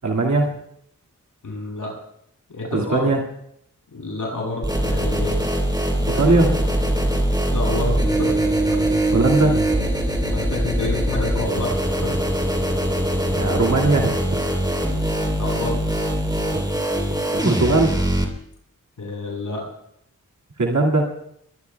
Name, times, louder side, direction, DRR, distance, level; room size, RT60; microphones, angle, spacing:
voice 1, 0.0-0.5 2.7-3.2 6.1-6.6 9.1-9.6 13.3-14.5 17.3-18.0 20.6-21.1, right 2 dB, 60° right, 0 dB, 2.2 m, -19 dB
voice 2, 1.4-1.9 2.5-3.1 3.9-5.4 6.1-6.2 7.5-8.3 8.7-8.8 10.2-12.2 15.4-15.9 19.0-19.6, left 2 dB, 75° left, -3 dB, 7.7 m, -29 dB
sound 1, 4.6-18.2, right 1 dB, 10° right, 3.7 m, -22 dB
23.5 x 22.5 x 2.3 m, 0.73 s
cardioid pair, 60°, 32 cm